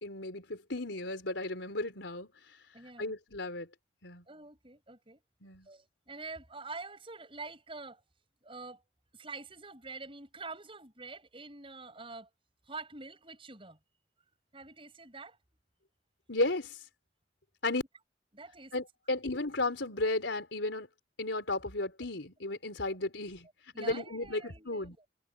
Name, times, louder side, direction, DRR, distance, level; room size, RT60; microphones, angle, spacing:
voice 1, 0.0-2.3 3.0-3.7 4.0-4.2 5.4-5.7 16.3-16.8 17.6-17.8 18.7-20.9 21.2-23.5 23.8-25.0, left 2 dB, 80° left, 4.0 m, -34 dB
voice 2, 2.7-3.1 4.3-5.2 5.7-8.0 8.4-8.8 9.1-12.3 12.6-13.8 14.5-15.4 18.3-18.8 23.7-25.0, right 3 dB, 30° right, 7.7 m, -46 dB
head